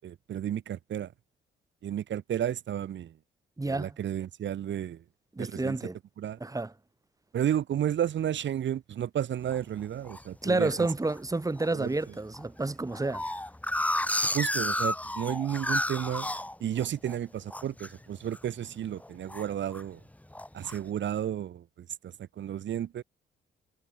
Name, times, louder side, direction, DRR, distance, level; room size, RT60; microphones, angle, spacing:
voice 1, 0.0-1.1 1.8-3.1 3.6-5.0 5.4-5.8 6.2-6.4 7.3-10.9 11.7-11.9 14.2-16.3 16.6-20.0 20.5-23.0, right 10 dB, 65° right, 7.9 m, -32 dB
voice 2, 3.6-3.9 5.3-6.0 6.4-6.7 10.4-13.2, right 2 dB, 15° right, 6.7 m, -30 dB
sound 1, 9.5-10.2 10.8-11.2 11.6-11.7 11.9-12.0 12.3-17.2 17.5-17.9 18.3-18.6 18.9-19.9 20.3-20.8, left 1 dB, 5° left, 2.5 m, -32 dB
cardioid pair, 90°, 20 cm